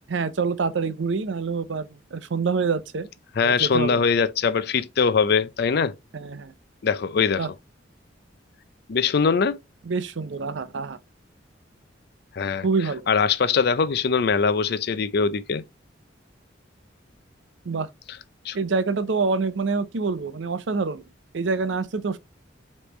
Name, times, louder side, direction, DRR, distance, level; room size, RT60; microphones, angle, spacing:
voice 1, 0.1-3.1 3.4-4.0 6.1-6.5 7.4-7.5 9.9-11.0 12.6-13.1 17.7-17.9 18.5-21.0 21.3-22.2, right 4 dB, 80° right, 0.6 m, -26 dB
voice 2, 3.4-6.0 6.8-7.5 8.9-9.6 12.3-12.7 13.1-15.6 18.4-18.6, left 5 dB, 60° left, 0.4 m, -22 dB
5.2 x 3.1 x 3.1 m
head